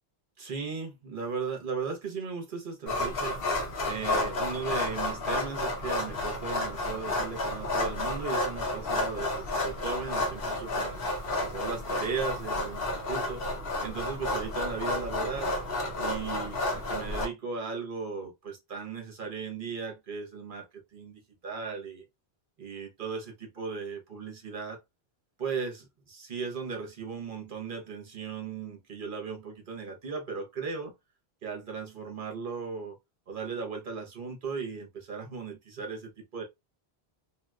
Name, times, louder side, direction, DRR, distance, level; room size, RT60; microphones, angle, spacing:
voice 1, 0.4-3.4 3.8-11.0 11.4-13.4 13.8-15.5 16.0-20.7 20.9-22.1 22.6-24.8 25.4-30.9 31.4-33.0 33.3-36.4, right 5 dB, 55° right, 1.1 m, -37 dB
sound 1, 2.9-17.2, left 2 dB, 65° left, 1.1 m, -31 dB
2.9 x 2.8 x 2.3 m
omnidirectional pair, 1.1 m